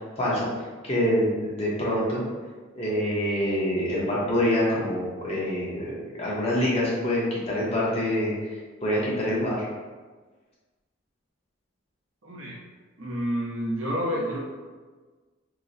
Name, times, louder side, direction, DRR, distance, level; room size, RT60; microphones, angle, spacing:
voice 1, 0.2-0.5 0.8-2.2 2.7-9.7, left 1 dB, 30° left, -6 dB, 0.8 m, -26 dB
voice 2, 12.2-12.6 13.0-14.4, equal, 80° right, -5 dB, 0.9 m, -29 dB
2.9 x 2.1 x 3.9 m, 1.4 s
head